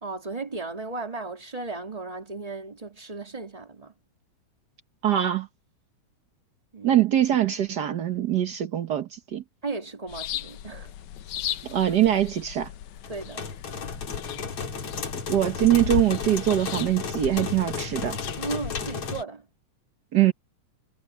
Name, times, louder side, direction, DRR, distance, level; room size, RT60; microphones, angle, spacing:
voice 1, 0.0-3.9 6.7-7.0 9.6-10.9 13.1-13.5 18.4-19.5, right 3 dB, 15° right, 2.4 m, -35 dB
voice 2, 5.0-5.5 6.8-9.4 11.6-12.7 15.3-18.2 20.1-20.3, right 12 dB, 75° right, 0.9 m, -23 dB
sound 1, 10.1-19.2, left 10 dB, 75° left, 2.4 m, -37 dB
sound 2, 13.0-19.2, left 5 dB, 50° left, 3.6 m, -34 dB
omnidirectional pair, 3.5 m